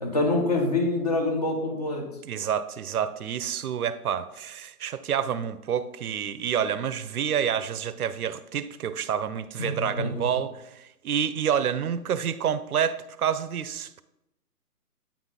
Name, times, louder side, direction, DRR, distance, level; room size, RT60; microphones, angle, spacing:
voice 1, 0.0-2.1 9.6-10.3, left 2 dB, 25° left, 0.8 m, -26 dB
voice 2, 2.2-14.0, right 8 dB, 70° right, 0.6 m, -28 dB
8.7 x 4.0 x 3.6 m
hypercardioid pair, 160°, 47 cm